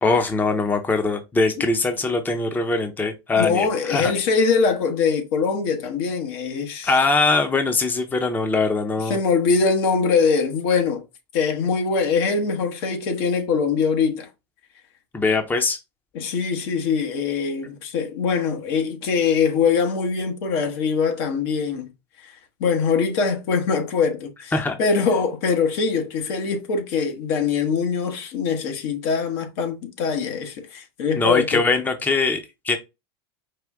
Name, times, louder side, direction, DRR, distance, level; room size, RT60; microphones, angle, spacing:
voice 1, 0.0-4.1 6.8-9.2 15.1-15.8 24.5-24.8 31.1-32.8, left 3 dB, 15° left, 0.7 m, -22 dB
voice 2, 3.3-6.9 9.1-11.0 11.3-14.3 16.1-21.9 22.2-22.3 22.6-24.5 24.8-31.6, left 5 dB, 65° left, 1.1 m, -22 dB
4.9 x 2.4 x 3.5 m
hypercardioid pair, 100°, 14 cm